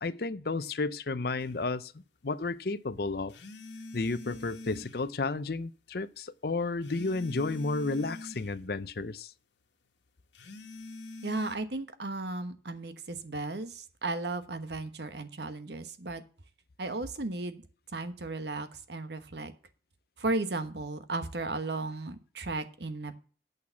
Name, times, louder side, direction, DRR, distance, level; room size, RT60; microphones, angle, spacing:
voice 1, 0.0-3.4 3.9-9.3, left 3 dB, 55° left, 0.6 m, -32 dB
sound 1, 1.4-1.5 3.3-5.1 6.8-8.6 10.3-11.6, left 2 dB, 80° left, 1.5 m, -45 dB
voice 2, 11.2-16.2 16.8-17.6 17.9-19.5 20.2-23.1, right 2 dB, 65° right, 1.2 m, -35 dB
8.5 x 6.6 x 7.0 m
head